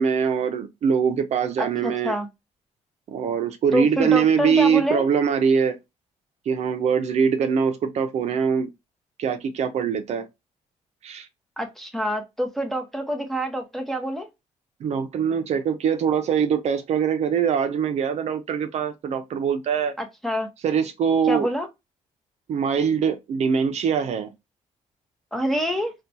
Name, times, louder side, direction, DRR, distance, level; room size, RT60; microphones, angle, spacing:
voice 1, 0.0-2.1 3.1-5.8 6.5-8.7 9.2-10.3 11.0-11.3 14.8-20.0 20.6-21.5 22.5-24.3, right 7 dB, 60° right, 0.5 m, -23 dB
voice 2, 1.6-2.3 3.7-5.1 11.6-14.3 20.0-20.5 21.3-21.7 25.3-25.9, equal, ahead, 0.8 m, -26 dB
4.2 x 2.2 x 2.7 m
cardioid pair, 125°, 13 cm